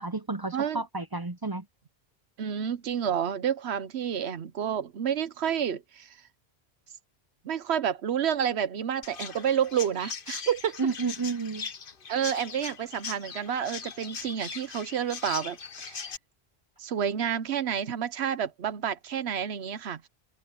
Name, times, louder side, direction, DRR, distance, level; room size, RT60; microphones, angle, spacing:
voice 1, 0.0-1.7 10.8-11.7, right 4 dB, 25° right, 0.5 m, -31 dB
voice 2, 2.4-6.1 7.4-10.8 12.1-16.1 16.8-20.1, right 8 dB, 75° right, 1.1 m, -29 dB
Chirp tweet, 9.0-16.2, left 6 dB, 55° left, 1.2 m, -40 dB
omnidirectional pair, 1.1 m